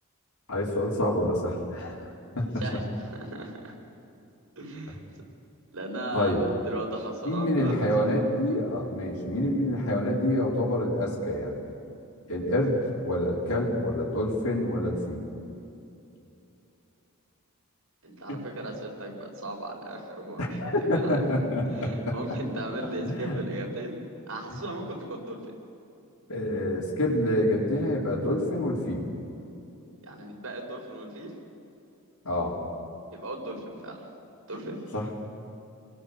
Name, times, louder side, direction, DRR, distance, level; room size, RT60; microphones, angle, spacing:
voice 1, 0.5-2.0 2.3-2.6 6.1-6.5 7.2-11.6 12.3-15.2 18.3-18.4 20.4-22.1 23.0-23.4 24.5-24.6 26.3-29.0 32.2-32.6 34.9-35.1, left 1 dB, 80° left, -5 dB, 5.0 m, -27 dB
voice 2, 2.6-3.8 4.6-5.0 5.7-7.9 18.0-20.6 20.9-21.2 21.7-24.0 24.3-25.4 30.0-31.3 33.1-34.0 34.5-34.8, right 1 dB, 75° right, 0 dB, 5.4 m, -37 dB
29.5 x 21.5 x 6.9 m, 2.8 s
head